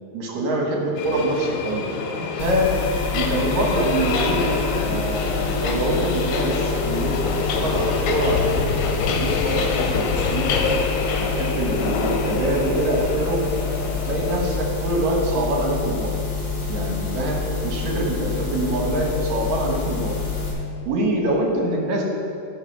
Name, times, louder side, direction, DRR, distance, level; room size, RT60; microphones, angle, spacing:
voice 1, 0.1-1.9 2.2-2.7 3.1-10.8 11.2-13.4 14.0-16.1 16.7-20.2 20.9-22.0, right 1 dB, 70° right, 0 dB, 2.4 m, -25 dB
Subway metro underground, 1.0-14.6, left 4 dB, 80° left, 2.1 m, -26 dB
sound 1, 2.4-20.5, left 5 dB, 50° left, 1.3 m, -28 dB
9.7 x 4.7 x 5.8 m, 2.6 s
omnidirectional pair, 3.5 m